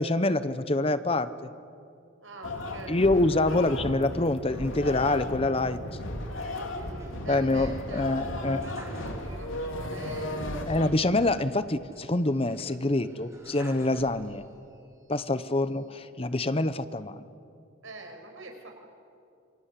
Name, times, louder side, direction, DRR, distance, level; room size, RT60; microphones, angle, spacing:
voice 1, 0.0-1.5 2.9-5.8 7.3-8.6 10.7-14.4 15.1-17.3, left 2 dB, 30° left, 13 dB, 0.7 m, -26 dB
voice 2, 2.2-3.6 6.3-10.6 17.8-18.7, right 2 dB, 75° right, 3 dB, 5.4 m, -45 dB
sound 1, 2.4-10.9, left 1 dB, 75° left, 2.9 m, -35 dB
Elevator Sounds - Elevator Stopping, 6.7-9.7 10.0-10.1 11.9-14.7 15.2-16.0, equal, 15° right, 3.2 m, -49 dB
27.5 x 25.0 x 8.4 m, 2.5 s
head